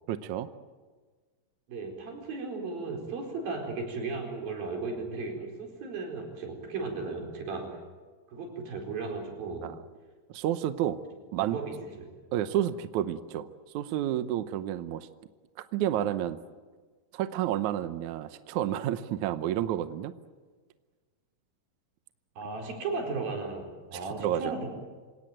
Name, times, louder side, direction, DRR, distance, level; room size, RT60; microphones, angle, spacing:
voice 1, 0.1-0.5 9.6-9.8 10.3-11.0 11.3-11.6 12.3-13.5 13.7-15.1 15.7-16.4 17.1-20.1 23.9-24.6, right 11 dB, 70° right, 11 dB, 2.0 m, -30 dB
voice 2, 1.7-7.7 8.3-9.7 11.5-12.1 22.4-24.7, right 3 dB, 90° right, 1 dB, 6.3 m, -35 dB
27.0 x 17.5 x 9.2 m, 1.4 s
omnidirectional pair, 4.0 m